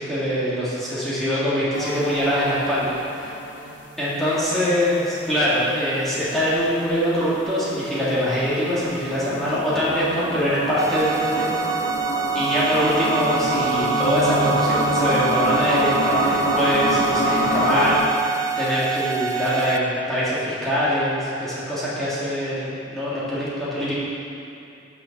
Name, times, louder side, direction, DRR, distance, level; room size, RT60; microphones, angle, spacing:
voice 1, 0.0-3.3 4.0-11.6 12.3-23.9, equal, ahead, -11 dB, 1.7 m, -23 dB
sound 1, 1.7-3.9 6.3-18.0, equal, 90° left, 1.1 m, -26 dB
sound 2, 10.8-19.8, right 6 dB, 20° right, 0.3 m, -27 dB
6.7 x 6.0 x 6.3 m, 2.7 s
head